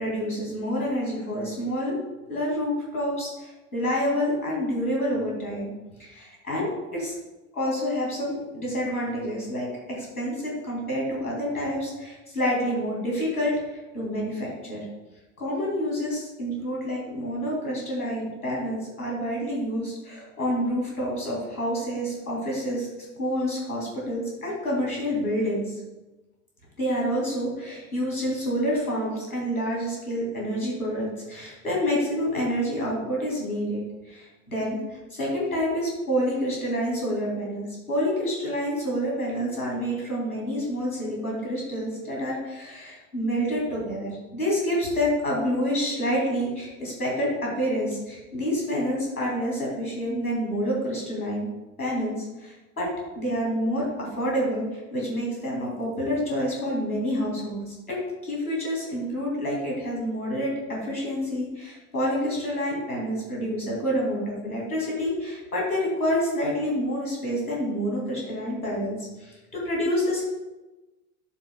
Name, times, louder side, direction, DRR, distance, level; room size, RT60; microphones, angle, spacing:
voice 1, 0.0-1.9 2.3-5.7 6.0-7.1 7.5-14.9 15.4-25.7 26.8-47.3 47.6-51.5 51.8-52.9 53.2-58.0 58.2-70.2, equal, 85° left, -4 dB, 2.6 m, -28 dB
9.9 x 7.1 x 2.3 m, 1.1 s
figure-of-eight pair, 70°, 43 cm